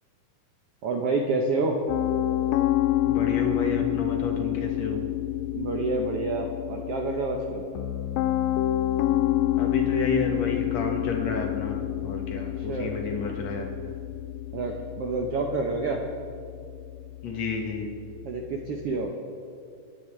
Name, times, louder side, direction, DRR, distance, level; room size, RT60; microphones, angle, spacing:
voice 1, 0.8-1.8 5.5-7.6 12.3-12.9 14.5-16.0 18.2-19.1, right 3 dB, 75° right, 1 dB, 1.4 m, -28 dB
Piano, 1.9-19.0, left 13 dB, 90° left, 2.3 m, -28 dB
voice 2, 3.0-5.1 9.6-13.9 17.2-17.9, left 3 dB, 55° left, 1 dB, 2.5 m, -31 dB
28.5 x 10.5 x 3.3 m, 2.3 s
omnidirectional pair, 4.0 m